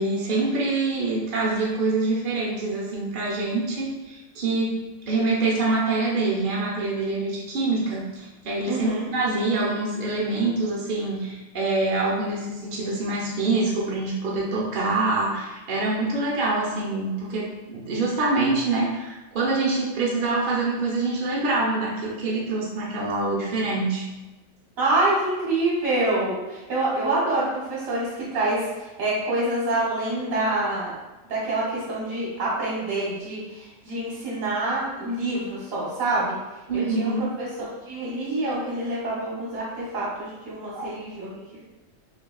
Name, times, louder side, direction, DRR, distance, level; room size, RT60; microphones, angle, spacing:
voice 1, 0.0-4.8 5.1-24.1 36.7-37.3 40.7-40.9, right 3 dB, 45° right, -5 dB, 0.8 m, -25 dB
voice 2, 8.7-9.1 24.8-30.9 31.3-36.4 36.7-41.6, right 2 dB, 75° right, -5 dB, 1.2 m, -26 dB
5.9 x 2.3 x 2.3 m, 1.1 s
omnidirectional pair, 1.4 m